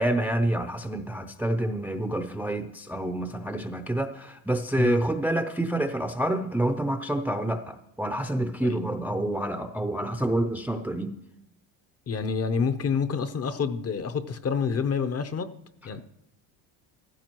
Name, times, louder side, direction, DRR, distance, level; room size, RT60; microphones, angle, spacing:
voice 1, 0.0-11.1, right 1 dB, 5° right, 0.5 m, -28 dB
voice 2, 12.1-15.5 15.8-16.0, left 5 dB, 30° left, 0.7 m, -28 dB
15.0 x 15.0 x 3.0 m
cardioid pair, 105°, 46 cm